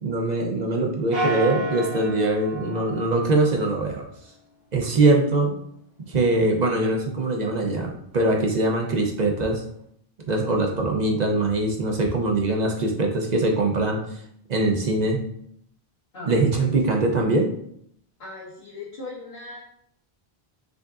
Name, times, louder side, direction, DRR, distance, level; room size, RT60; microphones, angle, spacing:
voice 1, 0.0-4.0 4.7-5.5 6.1-9.6 10.3-14.0 14.5-15.2 16.3-17.5, right 2 dB, 50° right, 1 dB, 0.7 m, -22 dB
sound 1, 1.1-3.8, right 1 dB, 70° right, 1.9 m, -30 dB
voice 2, 16.1-16.7 18.2-19.6, left 2 dB, 75° left, -10 dB, 1.5 m, -38 dB
5.1 x 3.7 x 2.4 m, 0.69 s
omnidirectional pair, 1.0 m